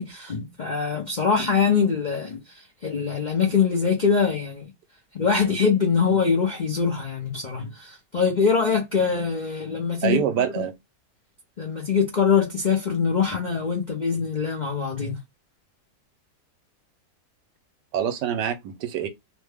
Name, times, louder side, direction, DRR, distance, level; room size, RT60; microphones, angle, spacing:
voice 1, 0.0-4.7 5.1-10.2 11.6-15.2, left 6 dB, 55° left, 0.5 m, -23 dB
voice 2, 10.0-10.7 17.9-19.1, right 9 dB, 80° right, 1.3 m, -25 dB
3.1 x 2.2 x 3.3 m
omnidirectional pair, 1.8 m